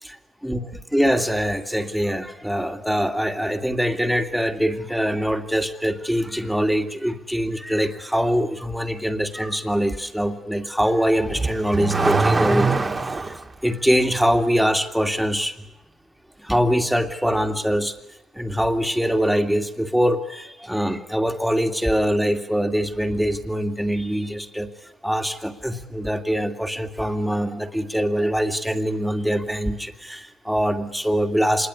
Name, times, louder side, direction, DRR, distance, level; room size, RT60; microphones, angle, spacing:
voice 1, 0.4-13.4 13.6-15.6 16.4-18.0 18.3-24.7 25.0-31.7, equal, ahead, 5 dB, 2.4 m, -23 dB
Car / Accelerating revving vroom, 11.2-13.4, right 3 dB, 25° right, 2.0 m, -22 dB
26.0 x 21.0 x 9.9 m, 0.89 s
cardioid pair, 90°, 0 cm